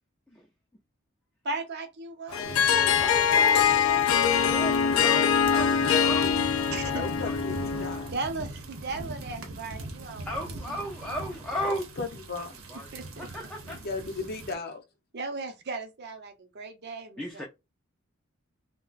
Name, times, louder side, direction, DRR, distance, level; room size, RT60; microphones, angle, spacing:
voice 1, 1.4-2.6 3.2-4.5 6.7-7.1 8.1-10.4 10.7-10.8 12.9-13.3 15.1-17.4, right 3 dB, 55° right, 0.6 m, -37 dB
Harp, 2.3-8.1, left 7 dB, 90° left, 0.4 m, -23 dB
voice 2, 2.3-3.8 4.5-6.6 6.8-7.4 7.7-7.8 10.3-11.8 12.5-13.8 17.2-17.4, equal, 5° left, 0.4 m, -36 dB
sound 1, 2.4-14.5, right 2 dB, 90° right, 0.8 m, -41 dB
voice 3, 3.5-3.8 6.9-8.1 11.6-12.5 13.7-14.8, left 3 dB, 50° left, 0.7 m, -36 dB
2.3 x 2.2 x 3.9 m
head